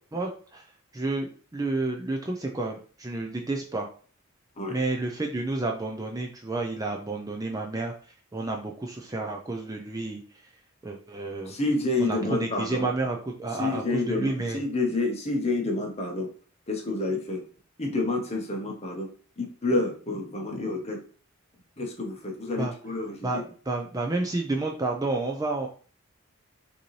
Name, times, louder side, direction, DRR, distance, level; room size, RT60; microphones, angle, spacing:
voice 1, 0.1-0.7 0.9-3.9 4.7-7.9 8.3-10.2 10.8-11.5 12.0-14.6 22.6-22.7 23.2-25.7, right 2 dB, 15° right, 1 dB, 0.4 m, -30 dB
voice 2, 11.4-12.9 13.6-16.3 16.7-17.4 17.8-19.1 19.4-21.0 21.8-23.4, left 2 dB, 30° left, 2 dB, 0.8 m, -29 dB
5.2 x 2.8 x 3.1 m, 0.41 s
head